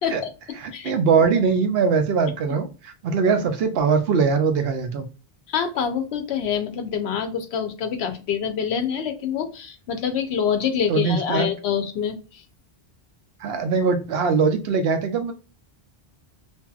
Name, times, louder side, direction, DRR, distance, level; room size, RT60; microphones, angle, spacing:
voice 1, 0.6-5.1 10.9-11.5 13.4-15.3, right 5 dB, 75° right, 7 dB, 0.8 m, -21 dB
voice 2, 5.5-12.4, left 7 dB, 90° left, 7 dB, 0.9 m, -26 dB
2.7 x 2.5 x 2.3 m, 0.34 s
omnidirectional pair, 1.0 m